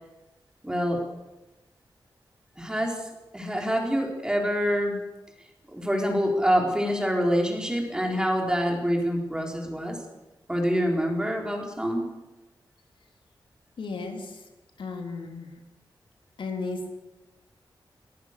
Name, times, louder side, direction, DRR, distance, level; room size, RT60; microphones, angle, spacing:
voice 1, 0.6-1.0 2.6-3.1 3.3-5.0 5.7-10.0 10.5-12.1, equal, 10° right, 1 dB, 4.3 m, -26 dB
voice 2, 13.8-14.3 14.8-15.5 16.4-16.8, left 3 dB, 80° left, 3 dB, 3.5 m, -34 dB
24.5 x 18.0 x 6.8 m, 1.0 s
wide cardioid pair, 140°, 8 cm